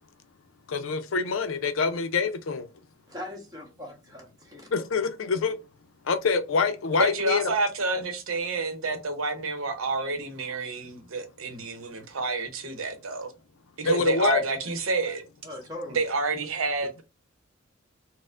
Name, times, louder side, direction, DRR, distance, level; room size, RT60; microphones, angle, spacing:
voice 1, 0.7-2.7 4.7-5.6 6.1-7.5 13.9-14.4, left 5 dB, 75° left, 0.5 m, -25 dB
voice 2, 3.1-4.7 15.4-16.0, left 1 dB, 20° right, 1.1 m, -40 dB
voice 3, 7.0-13.3 13.8-15.2 15.9-17.0, right 3 dB, 90° right, 0.8 m, -29 dB
4.2 x 2.1 x 2.4 m
head